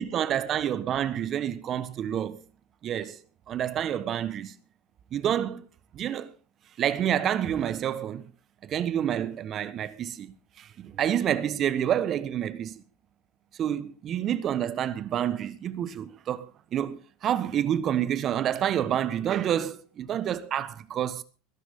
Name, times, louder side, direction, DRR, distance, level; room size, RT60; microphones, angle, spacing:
voice 1, 0.0-2.4 2.8-3.2 3.5-4.5 5.1-5.7 5.9-6.3 6.8-8.2 8.6-12.8 13.6-21.2, right 10 dB, 45° right, 1.4 m, -28 dB
20.5 x 11.5 x 3.8 m
hypercardioid pair, 85°, 0 cm